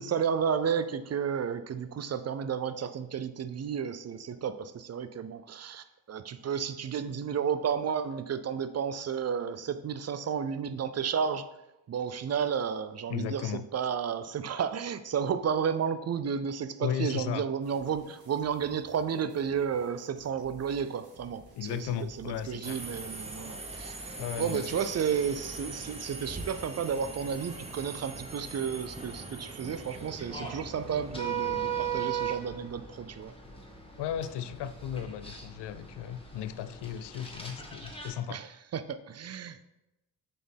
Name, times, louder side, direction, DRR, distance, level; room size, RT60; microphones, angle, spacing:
voice 1, 0.0-11.5 11.9-23.9 24.4-33.3 38.3-39.7, right 7 dB, 35° right, 0.5 m, -32 dB
voice 2, 13.1-13.6 16.8-17.4 21.6-22.8 23.8-23.9 24.2-24.7 34.0-38.4, left 9 dB, 70° left, 0.5 m, -35 dB
sound 1, 17.6-22.8, right 2 dB, 60° right, 1.5 m, -56 dB
Subway metro underground, 22.6-32.1, right 2 dB, 15° right, 1.0 m, -42 dB
sound 2, 29.8-38.1, right 7 dB, 10° left, 1.4 m, -38 dB
6.7 x 4.2 x 3.5 m
supercardioid pair, 60°, 44 cm